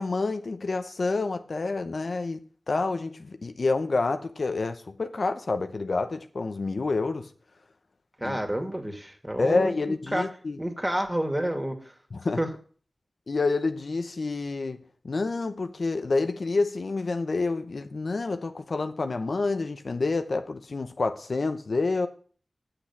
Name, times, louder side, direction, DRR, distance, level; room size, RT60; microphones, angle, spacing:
voice 1, 0.0-7.3 8.2-8.4 9.4-10.6 12.1-12.4 13.3-22.1, left 3 dB, 70° left, 0.8 m, -28 dB
voice 2, 8.2-9.7 10.1-10.2 10.6-11.9 12.4-12.5, right 1 dB, 15° right, 2.4 m, -29 dB
7.9 x 6.8 x 7.2 m
cardioid pair, 50°, 0 cm